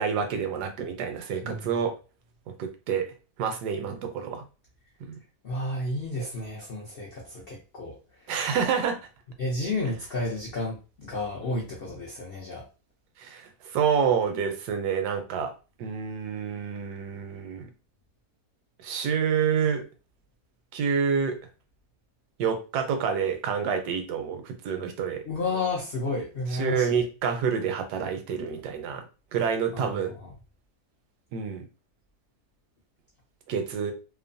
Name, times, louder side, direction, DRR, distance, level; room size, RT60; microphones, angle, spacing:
voice 1, 0.0-2.0 2.6-3.1 3.4-4.4 8.3-9.0 13.2-15.5 15.8-17.7 18.8-19.8 20.7-21.4 22.4-25.2 26.6-29.0 29.3-30.1 31.3-31.7 33.5-33.9, right 6 dB, 80° right, 6 dB, 1.2 m, -28 dB
voice 2, 1.4-1.7 5.4-8.3 9.4-12.7 25.3-27.0 29.7-29.9 30.2-30.3, left 2 dB, 80° left, -2 dB, 0.5 m, -32 dB
2.9 x 2.0 x 2.5 m, 0.33 s
omnidirectional pair, 1.8 m